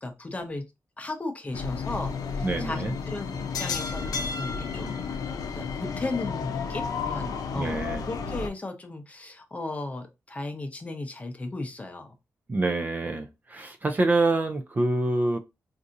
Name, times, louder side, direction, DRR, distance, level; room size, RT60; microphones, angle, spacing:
voice 1, 0.0-0.6 1.0-5.0 5.5-12.1, left 2 dB, 25° left, 0.6 m, -36 dB
sound 1, 1.5-8.5, left 5 dB, 85° left, 0.5 m, -32 dB
voice 2, 2.4-2.9 7.5-8.0 12.5-15.4, right 2 dB, 30° right, 0.4 m, -26 dB
4.0 x 2.5 x 2.5 m
wide cardioid pair, 135°, 6 cm